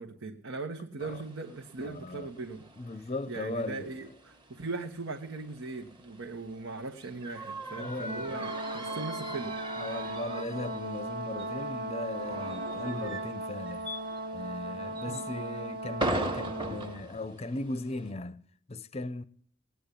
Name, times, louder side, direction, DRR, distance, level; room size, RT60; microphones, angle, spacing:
voice 1, 0.0-2.7 3.3-9.6 15.1-15.2, right 3 dB, 70° right, 1.2 m, -39 dB
sound 1, 1.0-18.1, right 1 dB, 20° right, 1.4 m, -41 dB
voice 2, 1.8-2.3 2.8-3.9 7.7-8.6 9.8-13.9 14.3-19.2, left 2 dB, 30° left, 0.6 m, -38 dB
Brass instrument, 8.1-17.0, right 2 dB, 45° right, 1.0 m, -37 dB
18.0 x 9.5 x 8.3 m
head